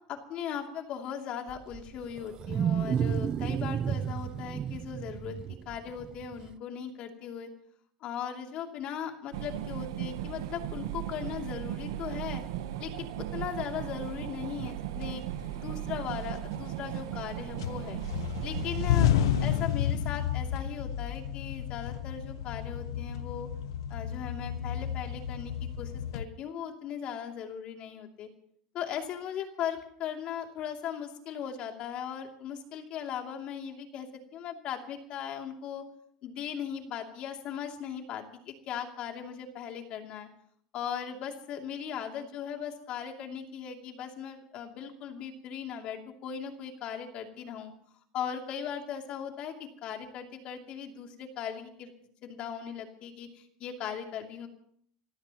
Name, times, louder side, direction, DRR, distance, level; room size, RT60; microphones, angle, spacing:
voice 1, 0.1-5.4 5.6-7.5 8.0-12.4 12.8-15.2 15.5-18.0 18.4-19.1 19.4-23.5 23.9-28.3 28.7-35.8 36.2-40.3 40.7-47.7 48.1-51.9 52.2-54.5, left 8 dB, 50° left, 3 dB, 2.8 m, -38 dB
Wild animals, 1.5-6.5, right 8 dB, 35° right, 0.5 m, -32 dB
sound 1, 9.3-19.6, right 12 dB, 80° right, 1.1 m, -37 dB
sound 2, 14.4-14.5 15.0-15.7 16.1-17.3 17.6-26.3, left 10 dB, 90° left, 0.7 m, -31 dB
27.0 x 16.0 x 3.0 m, 0.64 s
supercardioid pair, 125°, 2 cm